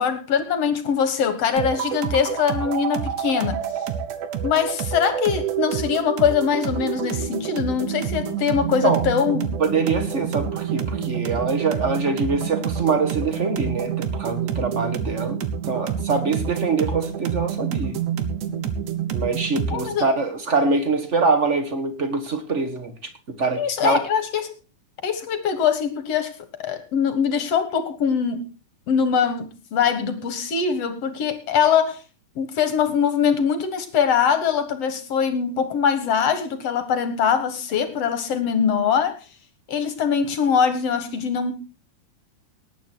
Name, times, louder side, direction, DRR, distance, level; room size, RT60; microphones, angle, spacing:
voice 1, 0.0-3.6 4.4-9.5 19.7-20.0 23.6-24.5 25.0-26.3 26.6-28.4 28.9-32.0 32.4-39.1 39.7-41.5, left 7 dB, 55° left, 10 dB, 2.2 m, -22 dB
sound 1, 1.6-20.0, right 8 dB, 75° right, 2.5 m, -28 dB
voice 2, 9.6-15.4 15.7-18.0 19.1-23.1 23.4-24.0, right 4 dB, 45° right, 8 dB, 0.9 m, -24 dB
18.5 x 9.4 x 4.5 m, 0.34 s
omnidirectional pair, 3.7 m